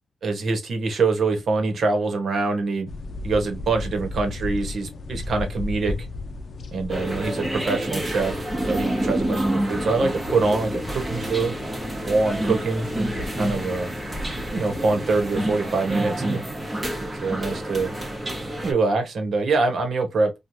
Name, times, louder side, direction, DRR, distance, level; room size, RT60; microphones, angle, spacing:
voice 1, 0.2-2.9 3.2-6.1 6.7-11.5 12.1-13.9 14.5-16.4 17.0-17.9 18.6-20.3, right 3 dB, 60° right, 1.1 m, -24 dB
sound 1, 2.9-15.5, left 2 dB, 55° left, 0.5 m, -36 dB
sound 2, 6.9-18.7, right 1 dB, 20° right, 1.1 m, -28 dB
3.1 x 2.3 x 2.6 m
cardioid pair, 95°, 0 cm